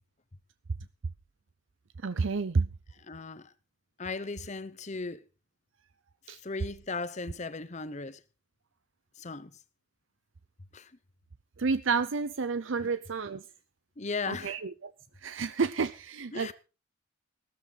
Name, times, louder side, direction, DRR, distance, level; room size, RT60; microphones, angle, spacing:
voice 1, 2.0-2.7 6.3-6.4 11.6-13.4 14.3-14.9 15.2-16.5, right 4 dB, 70° right, 0.6 m, -30 dB
voice 2, 3.1-3.5 4.0-5.2 6.4-8.2 9.2-9.5 10.7-10.9 12.8-12.9 14.0-14.6 16.3-16.5, left 3 dB, 35° left, 0.8 m, -37 dB
15.5 x 13.5 x 4.0 m
head